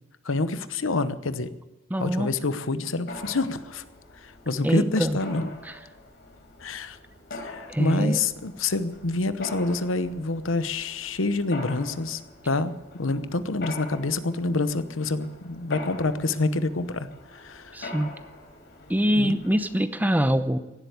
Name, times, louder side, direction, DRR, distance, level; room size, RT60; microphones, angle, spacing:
voice 1, 0.2-1.5 2.0-3.8 4.2-5.5 6.6-7.0 7.3-17.8 19.1-19.4, left 3 dB, 75° left, 13 dB, 1.0 m, -27 dB
voice 2, 1.9-2.3 4.6-5.2 5.7-5.8 7.7-8.2 17.7-18.1 18.9-20.6, equal, 10° right, 11 dB, 0.7 m, -24 dB
Mechanisms, 3.1-19.8, left 2 dB, 55° left, 4.1 m, -43 dB
17.0 x 8.1 x 9.5 m, 1.1 s
head